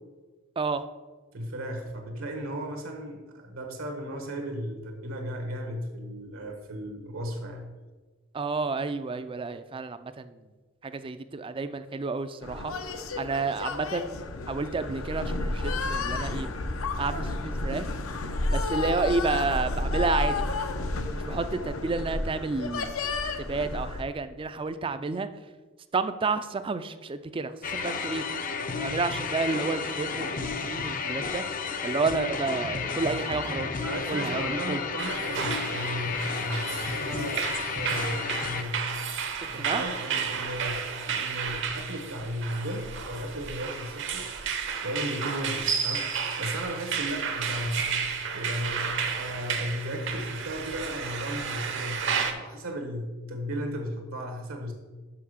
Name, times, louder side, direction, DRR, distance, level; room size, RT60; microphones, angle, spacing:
voice 1, 1.3-7.6 33.8-38.8 39.4-44.3 44.8-47.9 48.3-54.7, equal, 80° right, 3 dB, 1.2 m, -35 dB
voice 2, 8.3-10.3 10.8-12.7 13.2-14.2 14.5-16.5 17.0-17.9 18.5-20.5 21.1-22.9 23.4-25.3 25.9-28.2 28.8-31.4 31.8-33.7 34.1-34.8 39.6-39.8, right 4 dB, 25° right, 12 dB, 0.4 m, -30 dB
sound 1, 12.4-24.0, left 2 dB, 80° left, 0.8 m, -31 dB
sound 2, 27.6-38.6, left 5 dB, 40° left, 0.6 m, -32 dB
sound 3, 35.0-52.3, right 6 dB, 60° right, 0.8 m, -32 dB
5.7 x 5.7 x 6.3 m, 1.3 s
head